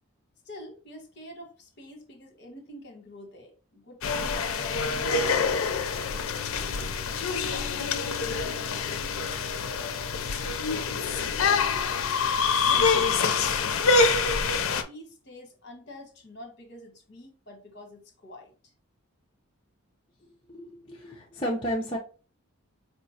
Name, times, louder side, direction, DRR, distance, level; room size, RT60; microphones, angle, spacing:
voice 1, 0.4-6.0 6.5-10.3 10.7-12.0 12.3-14.4 14.9-18.7, left 1 dB, 50° left, 1.1 m, -47 dB
sound 1, 4.0-14.8, left 4 dB, 70° left, 0.5 m, -26 dB
voice 2, 20.5-22.0, equal, 25° left, 0.6 m, -32 dB
4.6 x 3.0 x 2.7 m
head